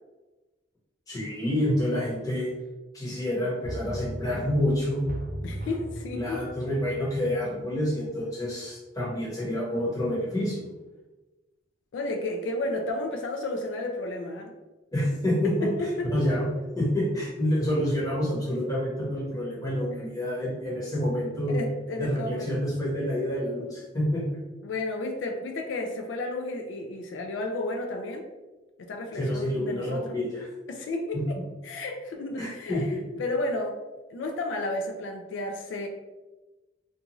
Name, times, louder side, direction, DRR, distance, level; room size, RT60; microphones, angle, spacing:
voice 1, 1.1-2.5 2.9-5.1 6.1-10.6 14.9-15.7 16.1-16.5 16.7-21.6 22.0-24.2 29.2-30.5 31.1-31.2 32.4-32.8, left 1 dB, 20° left, -6 dB, 1.0 m, -28 dB
sound 1, 3.6-8.3 8.7-8.8, right 1 dB, 45° right, 0.4 m, -38 dB
voice 2, 5.4-6.4 11.9-14.5 15.4-16.3 21.5-22.5 24.6-28.3 28.8-30.2 30.7-31.4 31.6-33.8 34.1-35.9, left 2 dB, 90° left, 3 dB, 0.4 m, -32 dB
2.6 x 2.3 x 2.9 m, 1.1 s
head